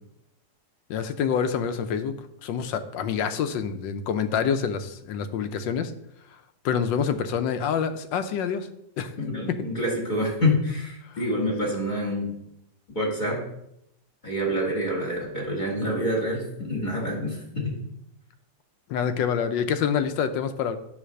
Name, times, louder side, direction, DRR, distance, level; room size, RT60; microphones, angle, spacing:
voice 1, 0.9-2.1 2.4-5.9 6.6-8.7 9.0-9.1 11.1-11.2 11.6-11.7 18.9-20.8, left 7 dB, 85° left, 9 dB, 1.4 m, -26 dB
voice 2, 9.2-12.4 12.9-13.4 14.2-17.4, equal, 25° left, -5 dB, 2.4 m, -27 dB
9.2 x 3.2 x 6.4 m, 0.80 s
omnidirectional pair, 1.9 m